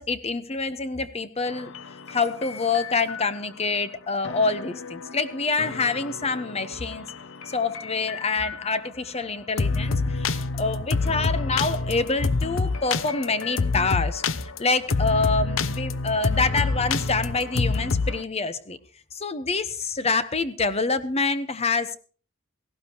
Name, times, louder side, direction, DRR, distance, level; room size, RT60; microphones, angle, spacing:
voice 1, 0.0-1.7 2.1-7.0 7.5-14.2 14.6-18.8 19.1-22.0, left 4 dB, 30° left, 13 dB, 1.1 m, -26 dB
sound 1, 1.5-3.3 4.2-8.6 9.6-18.2, left 4 dB, 75° left, 0.8 m, -28 dB
18.0 x 16.0 x 3.1 m, 0.39 s
head